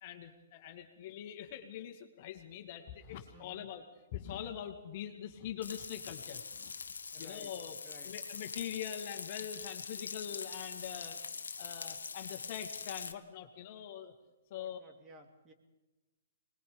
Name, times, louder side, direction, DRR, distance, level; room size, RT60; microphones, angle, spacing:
voice 1, 0.0-3.8 4.1-6.7 7.2-7.8 8.0-11.2 11.6-14.1 14.5-14.8, left 10 dB, 45° left, 5 dB, 2.2 m, -43 dB
voice 2, 3.3-3.7 7.1-7.5 7.8-8.1 14.5-15.5, equal, 20° right, 3 dB, 2.9 m, -56 dB
Frying (food), 5.6-13.1, left 5 dB, 80° left, 1.1 m, -43 dB
24.5 x 20.5 x 5.3 m, 1.1 s
hypercardioid pair, 130°, 0 cm